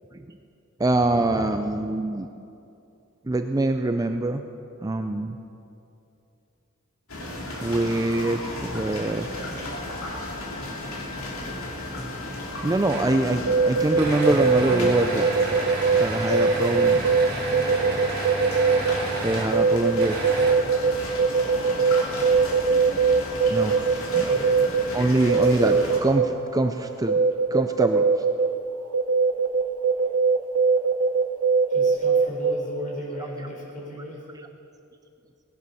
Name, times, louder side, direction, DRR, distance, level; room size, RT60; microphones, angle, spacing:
voice 1, 0.8-2.3 3.3-4.4 4.8-5.4 7.6-9.3 12.6-15.3 16.0-17.0 19.2-20.2 23.5-23.8 24.1-24.3 24.9-27.2 27.5-28.1, right 2 dB, 15° right, 7 dB, 0.5 m, -24 dB
sound 1, 7.1-26.0, left 2 dB, 70° left, 3.0 m, -34 dB
sound 2, 12.9-13.2 14.0-19.5 20.0-20.9, right 2 dB, 45° right, 2.6 m, -32 dB
sound 3, 13.5-14.9 15.2-18.9 19.3-20.9 21.2-24.8 25.3-26.3 26.6-26.7 27.1-28.5 28.9-32.5, right 5 dB, 90° right, 1.1 m, -20 dB
voice 2, 31.7-34.2, equal, 40° left, -3 dB, 4.5 m, -36 dB
18.5 x 11.0 x 5.6 m, 2.6 s
head